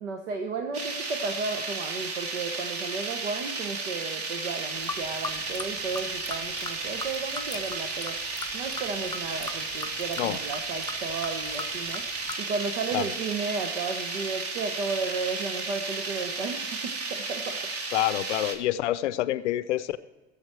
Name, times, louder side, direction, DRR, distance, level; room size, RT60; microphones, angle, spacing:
voice 1, 0.0-17.6, right 4 dB, 85° right, 5 dB, 1.0 m, -34 dB
sound 1, 0.7-18.6, right 3 dB, 45° right, 1.8 m, -33 dB
sound 2, 4.8-12.4, left 4 dB, 10° left, 0.5 m, -40 dB
voice 2, 17.9-20.0, left 14 dB, 85° left, 16 dB, 0.5 m, -27 dB
15.0 x 7.4 x 4.5 m, 1.2 s
hypercardioid pair, 85°, 34 cm